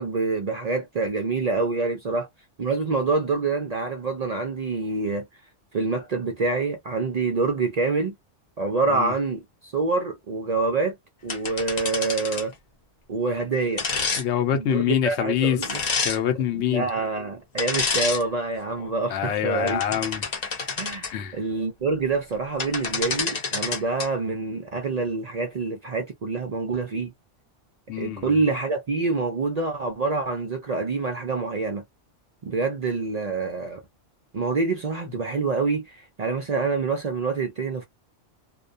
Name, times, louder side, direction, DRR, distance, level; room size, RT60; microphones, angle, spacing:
voice 1, 0.0-2.3 2.6-5.3 5.7-8.1 8.6-11.0 11.2-12.5 13.1-13.8 14.5-15.8 16.5-19.8 20.8-27.1 28.0-31.8 32.4-33.8 34.3-37.8, right 3 dB, 60° right, 0.4 m, -26 dB
sound 1, 11.3-12.5 13.8-14.2 15.6-16.2 17.6-18.2 18.7-18.9 19.5-21.1 22.3-22.4 22.6-24.1, left 4 dB, 45° left, 0.7 m, -28 dB
voice 2, 14.2-15.6 16.0-16.9 19.1-20.2 21.1-21.4 27.9-28.4, left 9 dB, 70° left, 0.9 m, -25 dB
2.3 x 2.2 x 2.4 m
omnidirectional pair, 1.3 m